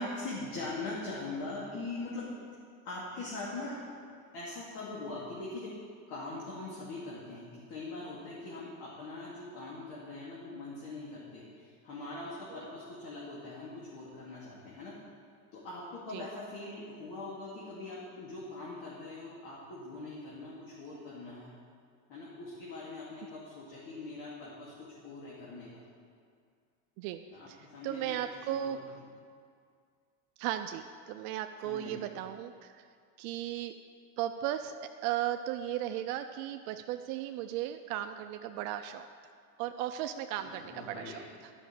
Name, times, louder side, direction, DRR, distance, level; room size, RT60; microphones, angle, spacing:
voice 1, 0.0-2.4 2.8-3.8 4.3-5.8 6.1-15.0 15.5-21.5 22.1-24.7 25.0-25.8 27.3-28.0 28.3-29.0 31.6-32.1 40.4-41.2, left 2 dB, 50° left, -6 dB, 2.5 m, -42 dB
voice 2, 27.0-29.0 30.4-32.8 33.2-33.8 34.2-34.7 35.0-39.1 39.6-41.1 41.4-41.5, right 12 dB, 65° right, 7 dB, 0.6 m, -36 dB
11.0 x 6.2 x 7.5 m, 2.1 s
supercardioid pair, 130°, 46 cm